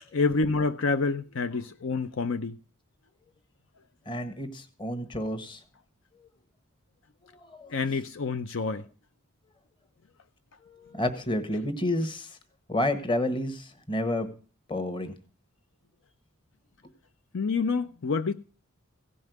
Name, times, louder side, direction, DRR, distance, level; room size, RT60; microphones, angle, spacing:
voice 1, 0.1-2.6 7.7-8.8 17.3-18.3, left 4 dB, 60° left, 0.6 m, -27 dB
voice 2, 4.0-5.6 6.2-6.3 7.3-7.7 10.6-12.4 12.7-14.3 14.7-15.2, left 1 dB, 25° left, 1.3 m, -30 dB
16.5 x 5.5 x 9.2 m
head